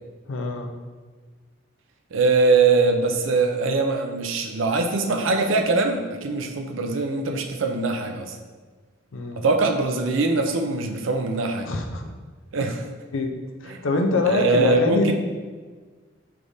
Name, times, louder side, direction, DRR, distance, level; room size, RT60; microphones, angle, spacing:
voice 1, 0.3-0.7 9.1-9.4 11.7-12.0 13.1-13.3 13.6-15.1, left 3 dB, 85° left, 4 dB, 0.5 m, -24 dB
voice 2, 2.1-8.4 9.4-11.7 12.5-12.8 13.7-13.8 14.3-15.1, right 3 dB, 80° right, 5 dB, 0.5 m, -22 dB
4.9 x 3.3 x 2.7 m, 1.4 s
head